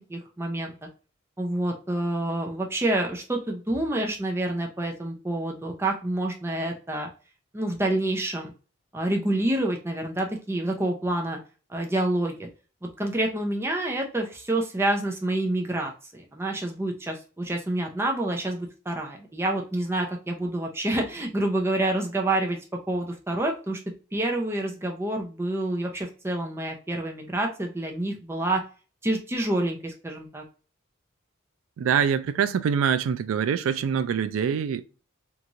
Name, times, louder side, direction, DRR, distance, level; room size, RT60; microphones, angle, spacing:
voice 1, 0.1-0.7 1.4-7.1 7.5-8.5 8.9-11.4 11.7-12.5 12.8-22.6 22.9-23.8 24.1-28.6 29.0-30.4, right 1 dB, 10° right, 0.5 m, -28 dB
voice 2, 31.8-34.8, right 7 dB, 80° right, 0.3 m, -24 dB
3.0 x 2.4 x 2.5 m
head